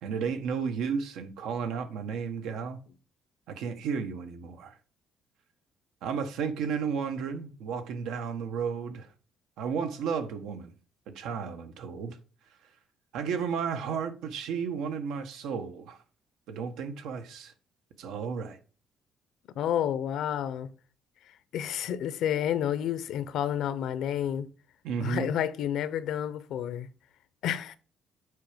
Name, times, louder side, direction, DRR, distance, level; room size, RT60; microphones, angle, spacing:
voice 1, 0.0-2.8 3.5-4.7 6.0-9.1 9.6-10.7 11.1-12.2 13.1-16.0 16.5-17.5 18.0-18.6 24.8-25.3, right 6 dB, 85° right, 1.3 m, -33 dB
voice 2, 19.6-20.7 21.5-24.5 25.0-26.9 27.4-27.8, left 10 dB, 70° left, 0.7 m, -30 dB
8.4 x 4.7 x 5.1 m
cardioid pair, 160°, 0 cm